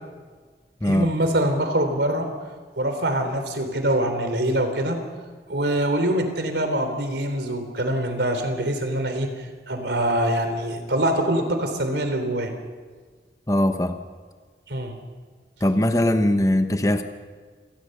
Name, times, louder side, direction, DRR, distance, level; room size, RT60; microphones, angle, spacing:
voice 1, 0.8-2.3 2.8-5.0 5.5-9.3 9.7-12.5 14.7-14.9, right 1 dB, 75° right, 7 dB, 3.6 m, -24 dB
voice 2, 13.5-14.0 15.6-17.0, left 1 dB, 20° left, 8 dB, 1.0 m, -20 dB
27.0 x 19.5 x 6.7 m, 1.5 s
head